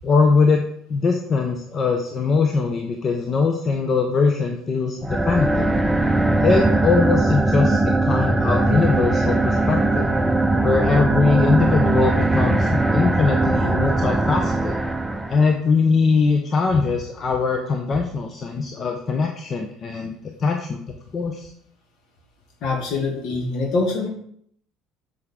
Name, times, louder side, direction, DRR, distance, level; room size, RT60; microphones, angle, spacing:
voice 1, 0.0-5.7 6.4-10.1 10.6-14.7 15.3-20.8 21.1-21.5, left 4 dB, 40° left, 4 dB, 0.9 m, -21 dB
sound 1, 5.0-15.5, right 2 dB, 10° right, 0.7 m, -20 dB
voice 2, 22.6-24.1, left 3 dB, 55° left, 2 dB, 2.0 m, -24 dB
7.9 x 6.2 x 3.8 m, 0.67 s
figure-of-eight pair, 60°, 0 cm